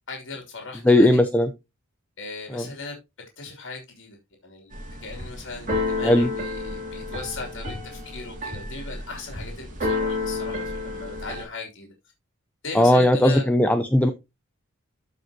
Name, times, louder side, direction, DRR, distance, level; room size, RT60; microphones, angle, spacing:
voice 1, 0.1-1.2 2.2-3.0 3.4-4.2 4.4-11.9 12.6-13.5, left 3 dB, 65° left, 2.8 m, -37 dB
voice 2, 0.8-1.5 2.5-2.7 6.0-6.3 12.7-14.1, left 1 dB, 5° left, 0.6 m, -18 dB
Keyboard (musical), 4.7-11.4, left 3 dB, 40° right, 2.9 m, -30 dB
13.5 x 5.5 x 2.8 m
head